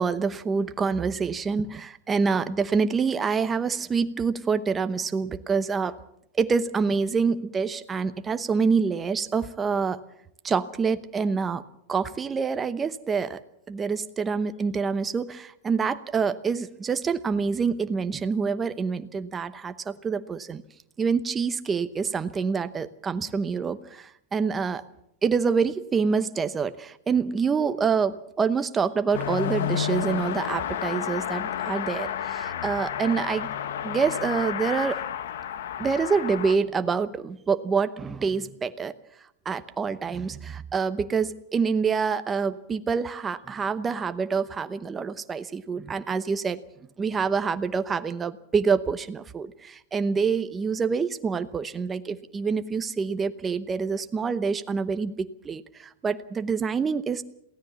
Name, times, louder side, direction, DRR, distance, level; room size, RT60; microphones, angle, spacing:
voice 1, 0.0-6.0 6.4-10.0 10.4-11.6 11.9-13.4 13.7-20.6 21.0-24.8 25.2-33.5 33.8-35.0 35.8-38.9 39.4-46.6 47.0-57.2, right 5 dB, 15° right, 11 dB, 0.9 m, -26 dB
Car passing by / Accelerating revving vroom, 29.1-36.6, left 9 dB, 75° left, 1.4 m, -31 dB
22.5 x 17.0 x 7.0 m, 0.76 s
supercardioid pair, 170°, 0 cm